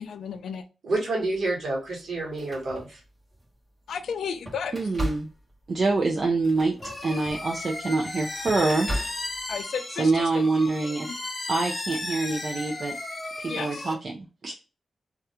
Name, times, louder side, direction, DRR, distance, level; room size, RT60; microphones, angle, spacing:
voice 1, 0.0-0.6 3.9-4.8 9.5-11.2 13.5-13.9, left 6 dB, 85° left, 10 dB, 0.3 m, -34 dB
voice 2, 0.8-3.0, right 2 dB, 70° right, -2 dB, 1.2 m, -28 dB
sound 1, 1.3-1.5 2.2-3.5 4.0-9.6, equal, 25° right, 0.9 m, -37 dB
voice 3, 4.7-5.3 5.7-6.8 7.0-9.1 10.0-11.1 11.5-12.9 13.4-14.5, right 3 dB, 50° right, 1 dB, 0.4 m, -25 dB
sound 2, 6.8-13.9, left 2 dB, 30° left, 0.6 m, -35 dB
2.3 x 2.2 x 2.8 m, 0.33 s
cardioid pair, 80°, 0 cm